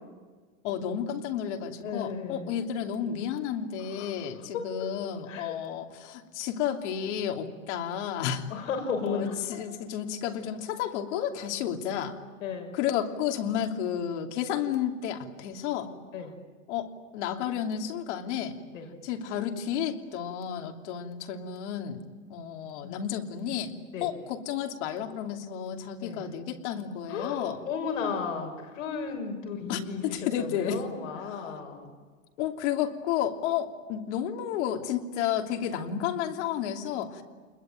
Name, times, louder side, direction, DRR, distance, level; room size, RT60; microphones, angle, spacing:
voice 1, 0.6-8.4 9.0-12.2 12.7-15.9 16.7-18.6 19.0-22.0 22.3-23.7 24.0-27.6 29.7-30.8 31.3-31.6 32.4-37.2, left 9 dB, 60° left, 4 dB, 3.1 m, -32 dB
voice 2, 1.8-2.5 3.8-4.4 5.3-5.5 8.5-9.4 12.4-12.7 16.1-16.3 18.7-18.9 22.8-23.0 23.9-24.1 26.0-26.3 27.1-31.9, left 5 dB, 85° left, 4 dB, 6.2 m, -34 dB
27.5 x 21.5 x 9.2 m, 1.5 s
supercardioid pair, 150°, 38 cm